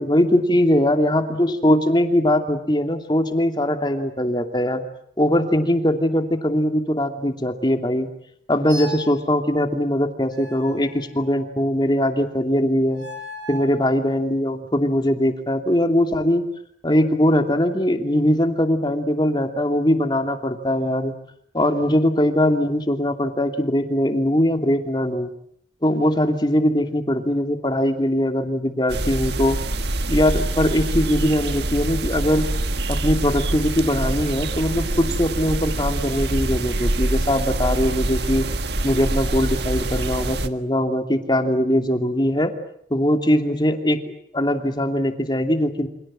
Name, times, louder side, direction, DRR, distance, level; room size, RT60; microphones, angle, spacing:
voice 1, 0.0-4.8 5.2-8.1 8.5-13.0 13.5-16.5 16.8-21.1 21.5-25.3 25.8-29.6 30.1-32.4 32.9-38.5 38.8-42.5 42.9-44.0 44.3-45.9, left 1 dB, 25° left, 6 dB, 2.7 m, -21 dB
sound 1, 8.7-9.2 10.3-11.6 12.9-13.8, equal, 80° right, 7.2 m, -37 dB
sound 2, 28.9-40.5, right 2 dB, 60° right, 1.7 m, -25 dB
29.5 x 26.5 x 7.6 m, 0.68 s
head